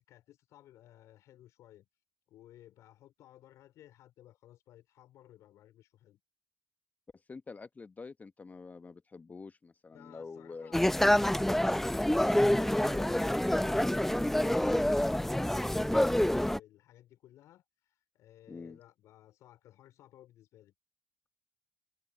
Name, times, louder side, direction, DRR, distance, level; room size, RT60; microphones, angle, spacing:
voice 1, 0.0-1.9 2.3-6.2 9.9-11.8 12.2-20.7, left 13 dB, 65° left, 4.1 m, -57 dB
voice 2, 7.1-10.8 12.9-13.2 14.8-15.0 18.5-18.8, left 4 dB, 30° left, 1.1 m, -46 dB
sound 1, 10.7-16.6, left 1 dB, 5° left, 0.6 m, -27 dB
open air
hypercardioid pair, 55°, 6 cm